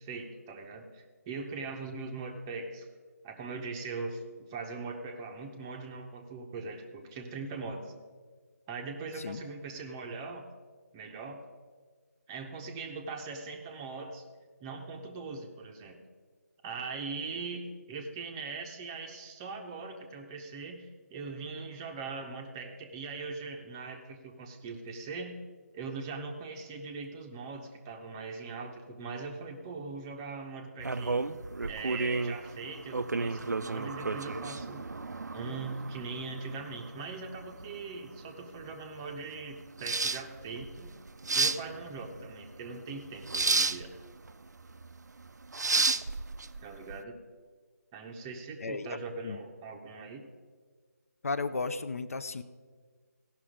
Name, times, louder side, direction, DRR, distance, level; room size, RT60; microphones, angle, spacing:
voice 1, 0.0-2.9 3.2-7.9 8.7-10.5 10.9-11.4 12.3-14.2 14.6-16.0 16.6-25.4 25.7-31.2 31.7-34.8 35.3-40.9 41.3-44.0 46.6-47.2 47.9-50.2, right 4 dB, 15° right, 3 dB, 0.7 m, -41 dB
sound 1, 30.8-47.0, right 3 dB, 80° right, 0.5 m, -33 dB
voice 2, 48.6-49.4 51.2-52.4, left 4 dB, 55° left, 12 dB, 0.6 m, -35 dB
16.5 x 5.9 x 5.0 m, 1.5 s
figure-of-eight pair, 160°, 9 cm